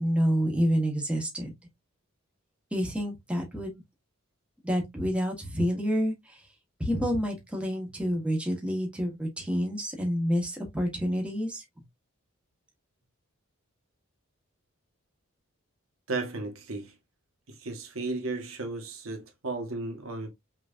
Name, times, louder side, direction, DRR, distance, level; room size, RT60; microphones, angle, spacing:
voice 1, 0.0-1.5 2.7-3.8 4.6-6.4 6.8-11.6, equal, 5° right, 1.3 m, -28 dB
voice 2, 16.1-16.9 17.5-20.3, right 3 dB, 80° right, 1.5 m, -34 dB
6.0 x 3.1 x 2.6 m
head